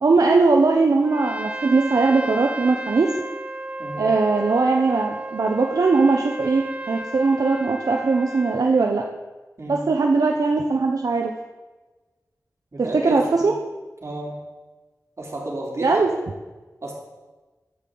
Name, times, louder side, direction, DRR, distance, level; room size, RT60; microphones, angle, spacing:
voice 1, 0.0-3.1 4.0-9.0 9.7-11.3 12.8-13.5 15.8-16.1, right 3 dB, 75° right, 1 dB, 0.9 m, -20 dB
Trumpet, 1.0-8.7, right 1 dB, 20° right, 0.5 m, -33 dB
voice 2, 3.8-4.1 9.6-9.9 12.7-13.5 14.0-14.4 15.2-16.1 16.8-16.9, right 1 dB, 50° right, -3 dB, 3.7 m, -32 dB
13.5 x 10.5 x 4.0 m, 1.2 s
wide cardioid pair, 75°, 6 cm